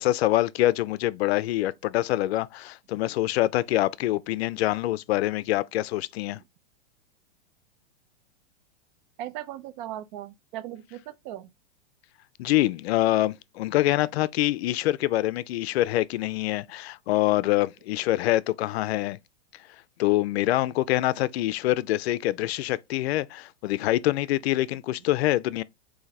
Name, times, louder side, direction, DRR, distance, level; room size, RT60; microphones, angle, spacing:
voice 1, 0.0-6.4 12.4-19.2 20.0-25.6, left 16 dB, 65° left, 0.5 m, -25 dB
voice 2, 9.2-11.5, right 13 dB, 45° right, 0.6 m, -38 dB
4.0 x 2.7 x 4.0 m
hypercardioid pair, 125°, 34 cm